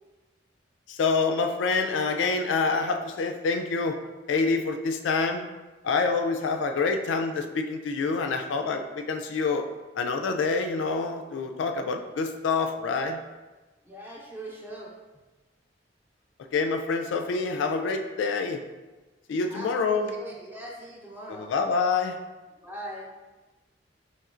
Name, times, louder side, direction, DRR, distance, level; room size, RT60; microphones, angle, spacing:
voice 1, 0.9-4.0 4.3-5.5 5.8-9.7 10.0-13.2 16.5-18.6 19.3-20.1 21.3-22.2, left 4 dB, 85° left, 5 dB, 0.3 m, -27 dB
voice 2, 13.8-14.9 19.4-21.5 22.6-23.1, right 1 dB, 10° right, -3 dB, 0.7 m, -40 dB
4.2 x 3.1 x 2.4 m, 1.2 s
head